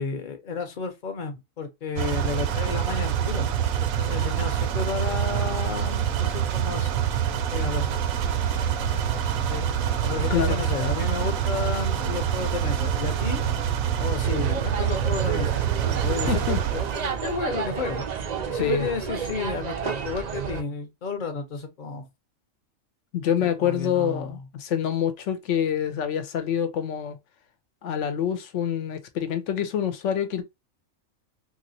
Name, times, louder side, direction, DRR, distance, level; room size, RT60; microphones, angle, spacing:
voice 1, 0.0-3.5 4.0-7.1 7.5-8.0 9.5-9.7 10.0-13.4 14.0-18.0 18.5-22.1 23.4-24.4, left 5 dB, 40° left, 0.8 m, -32 dB
sound 1, 2.0-17.1, right 9 dB, 90° right, 1.0 m, -26 dB
Engine, 8.1-15.1, left 7 dB, 90° left, 1.1 m, -44 dB
voice 2, 10.3-10.6 16.3-16.6 18.6-18.9 23.1-27.2 27.8-30.4, left 9 dB, 65° left, 1.0 m, -26 dB
sound 2, 14.2-20.6, right 7 dB, 70° right, 0.4 m, -31 dB
3.0 x 2.8 x 2.7 m
omnidirectional pair, 1.4 m